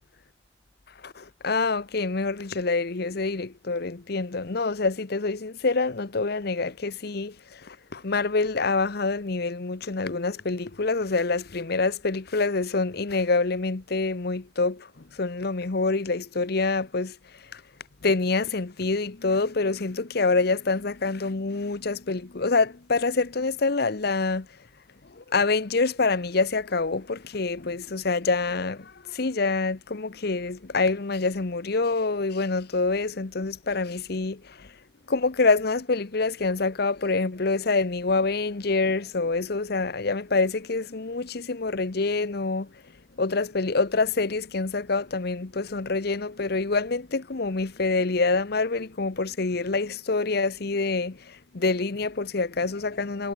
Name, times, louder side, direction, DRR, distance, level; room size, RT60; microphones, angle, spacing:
voice 1, 1.0-17.6 18.0-24.5 25.1-34.7 35.1-42.7 43.2-53.3, left 3 dB, 55° left, 0.9 m, -26 dB
head